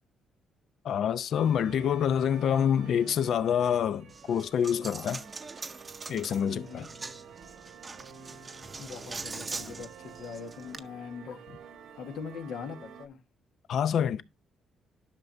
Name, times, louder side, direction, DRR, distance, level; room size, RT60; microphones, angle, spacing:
voice 1, 0.8-5.2 6.1-6.9 13.7-14.2, left 8 dB, 65° left, 0.5 m, -27 dB
sound 1, 1.3-13.1, right 6 dB, 85° right, 1.2 m, -49 dB
Coin (dropping), 4.1-10.8, right 3 dB, 30° right, 0.6 m, -42 dB
voice 2, 6.5-6.9 8.8-11.6 12.0-13.2, left 5 dB, 85° left, 1.4 m, -41 dB
11.0 x 5.9 x 2.6 m
cardioid pair, 90°, 0 cm